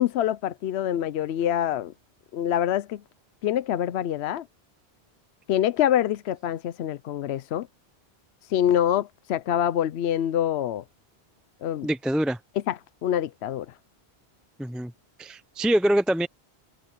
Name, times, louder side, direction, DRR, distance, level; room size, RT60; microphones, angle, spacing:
voice 1, 0.0-1.9 2.3-3.0 3.4-4.5 5.5-7.7 8.5-10.8 11.6-11.9 12.7-13.7, left 10 dB, 80° left, 0.8 m, -25 dB
voice 2, 11.8-12.4 14.6-14.9 15.2-16.3, right 1 dB, ahead, 0.3 m, -24 dB
omnidirectional pair, 1.1 m